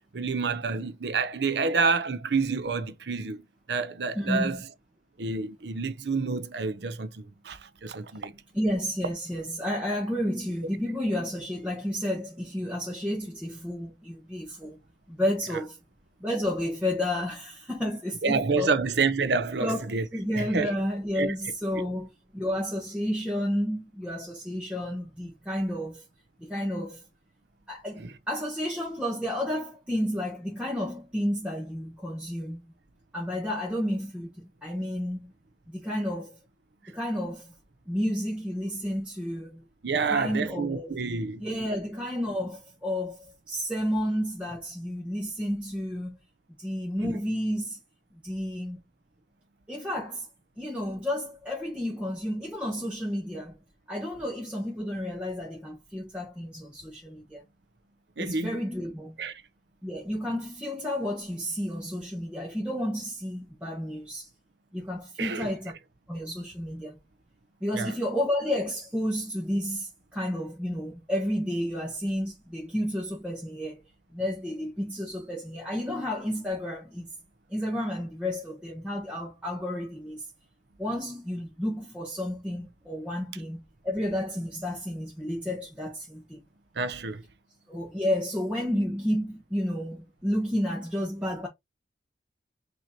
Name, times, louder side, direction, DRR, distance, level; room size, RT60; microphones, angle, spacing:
voice 1, 0.1-3.4 3.7-4.6 5.2-8.3 18.2-20.1 20.4-20.7 21.2-21.3 28.0-28.1 39.8-41.4 47.0-47.2 58.2-58.6 59.2-59.4 65.2-65.5 67.7-67.9 86.7-87.2, right 4 dB, 70° right, 0.7 m, -28 dB
voice 2, 4.1-4.6 8.5-14.8 15.1-15.8 16.2-18.7 19.6-19.9 20.1-26.0 26.4-27.0 27.7-32.7 33.1-35.3 35.7-36.4 36.9-37.5 37.8-39.6 40.1-41.0 41.4-46.2 46.6-47.8 48.2-48.8 49.7-50.3 50.6-53.6 53.9-57.4 58.2-59.2 59.8-64.3 64.7-65.7 66.1-67.0 67.6-73.8 74.1-77.1 77.5-80.3 80.8-86.4 87.7-91.5, equal, 5° right, 1.1 m, -31 dB
5.9 x 2.9 x 2.7 m
head